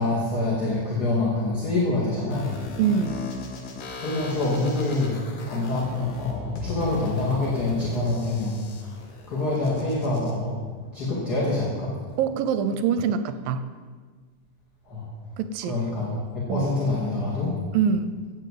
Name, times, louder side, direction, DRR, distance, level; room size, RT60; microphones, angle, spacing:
voice 1, 0.0-2.5 4.0-5.2 5.5-8.8 9.3-10.6 10.9-12.0 14.9-15.1 15.7-17.5, left 2 dB, 30° left, -6 dB, 2.6 m, -26 dB
sound 1, 2.3-10.3, left 4 dB, 90° left, 3.8 m, -37 dB
voice 2, 2.8-3.2 12.2-13.6 15.4-15.8 16.5-16.7 17.7-18.2, right 7 dB, 75° right, 11 dB, 2.2 m, -24 dB
17.0 x 7.6 x 7.7 m, 1.5 s
omnidirectional pair, 4.5 m